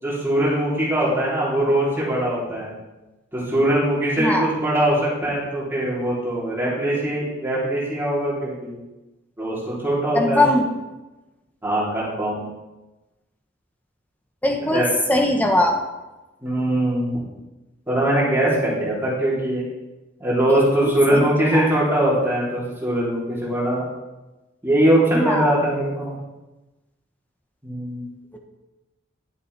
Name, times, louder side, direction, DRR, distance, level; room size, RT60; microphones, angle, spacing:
voice 1, 0.0-2.7 3.3-8.7 9.4-10.4 11.6-12.4 14.7-14.9 16.4-17.2 17.9-19.6 20.2-23.8 24.6-26.1 27.6-28.0, right 1 dB, 10° right, -7 dB, 3.2 m, -21 dB
voice 2, 4.2-4.5 10.1-10.7 14.4-14.8 15.1-15.8 20.5-21.7 25.1-25.6 28.3-28.4, left 1 dB, 10° left, 2 dB, 1.0 m, -21 dB
10.5 x 8.9 x 3.4 m, 1.1 s
head